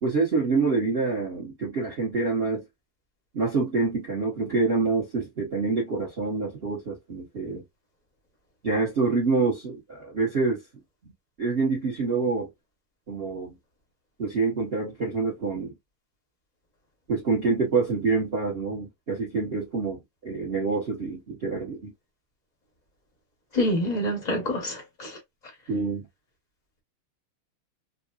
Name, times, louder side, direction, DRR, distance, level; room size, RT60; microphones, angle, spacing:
voice 1, 0.0-2.6 3.3-7.6 8.6-10.6 11.0-11.1 11.4-12.5 13.1-13.6 14.2-15.7 17.1-21.9 25.7-26.0, right 4 dB, 35° right, 1.0 m, -26 dB
voice 2, 23.5-25.1, left 1 dB, 30° left, 0.7 m, -26 dB
3.9 x 2.2 x 2.3 m
omnidirectional pair, 2.4 m